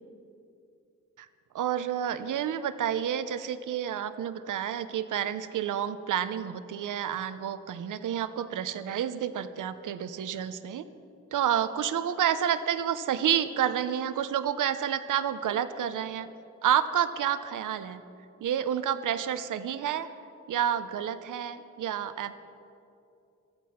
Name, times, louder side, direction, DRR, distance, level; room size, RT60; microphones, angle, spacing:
voice 1, 1.5-10.9 11.3-16.3 16.6-18.0 18.4-20.1 20.5-22.3, right 9 dB, 85° right, 12 dB, 0.8 m, -29 dB
15.0 x 14.5 x 5.8 m, 2.7 s
wide cardioid pair, 120°, 30 cm